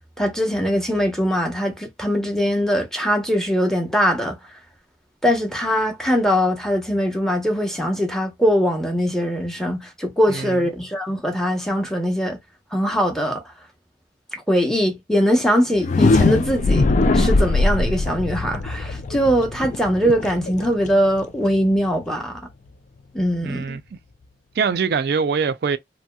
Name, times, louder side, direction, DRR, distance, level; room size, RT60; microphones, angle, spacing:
voice 1, 0.2-4.4 5.2-12.4 12.7-13.4 14.3-16.9 17.1-22.4 23.1-23.8, equal, 5° left, 0.8 m, -21 dB
sound 1, 15.7-21.6, left 3 dB, 45° left, 0.4 m, -20 dB
voice 2, 23.4-24.0 24.6-25.8, right 5 dB, 60° right, 0.4 m, -23 dB
2.8 x 2.8 x 2.2 m
head